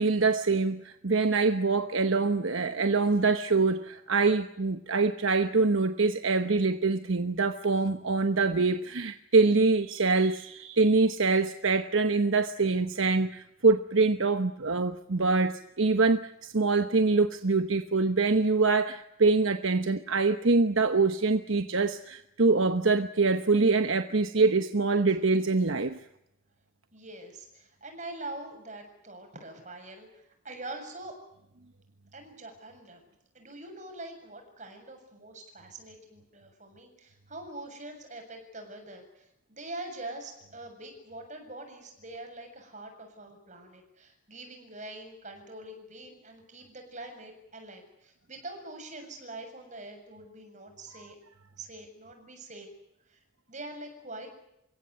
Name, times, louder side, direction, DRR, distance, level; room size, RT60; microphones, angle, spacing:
voice 1, 0.0-26.0, right 3 dB, 70° right, 1.1 m, -25 dB
voice 2, 26.9-31.2 32.1-33.0 33.3-51.2 51.6-52.7 53.1-53.2 53.5-54.3, right 2 dB, 35° right, 7.3 m, -44 dB
29.5 x 16.5 x 9.5 m
head